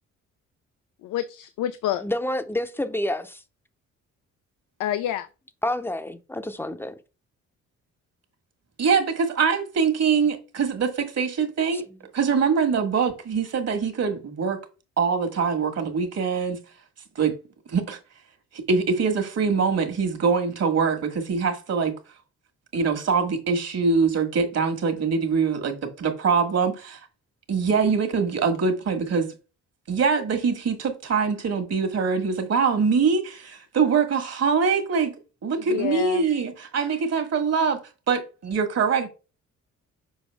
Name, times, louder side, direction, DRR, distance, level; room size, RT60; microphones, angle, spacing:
voice 1, 1.0-2.0 4.8-5.3 35.6-36.2, left 12 dB, 85° left, 0.5 m, -28 dB
voice 2, 2.0-3.4 5.6-6.9 11.7-11.8, left 1 dB, 5° left, 0.7 m, -28 dB
voice 3, 8.8-11.8 12.1-14.6 15.0-16.6 17.1-17.3 17.7-18.0 18.7-21.9 22.7-27.0 27.5-29.3 29.9-35.1 35.4-37.8 38.1-39.1, right 5 dB, 55° right, 1.6 m, -23 dB
6.3 x 4.8 x 3.5 m
cardioid pair, 90°, 30 cm